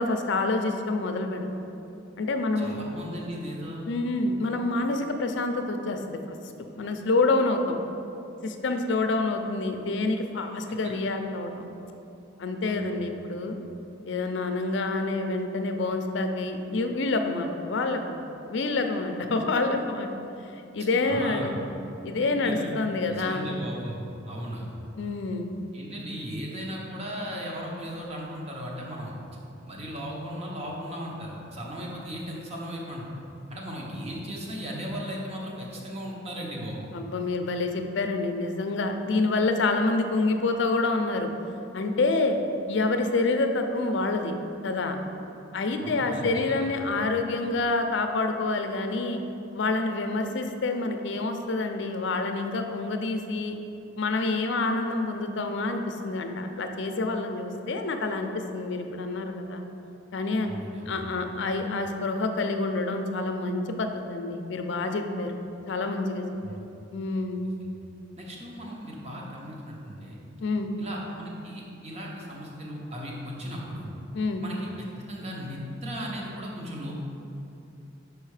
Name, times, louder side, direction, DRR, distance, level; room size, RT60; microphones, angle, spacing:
voice 1, 0.0-1.6 2.2-2.7 3.9-6.2 6.8-7.8 8.4-11.7 12.4-13.6 14.0-20.1 20.7-21.6 22.0-23.4 25.0-25.5 36.9-41.3 41.7-42.4 42.7-44.4 44.6-45.0 45.5-49.2 49.5-53.5 54.0-59.6 60.1-60.5 60.9-65.4 65.7-66.6 66.9-67.4 70.4-70.7 74.1-74.4, left 3 dB, 65° left, 6 dB, 0.5 m, -27 dB
voice 2, 2.6-3.9 12.6-12.9 21.0-21.6 22.4-22.5 23.1-24.0 24.3-24.7 25.7-29.1 29.7-33.2 33.5-36.9 45.8-46.7 60.4-61.0 66.3-66.6 67.6-67.7 68.2-70.2 70.8-73.9 74.4-74.7 75.1-77.0, equal, 35° right, -2 dB, 1.0 m, -37 dB
5.5 x 4.8 x 4.8 m, 2.8 s
head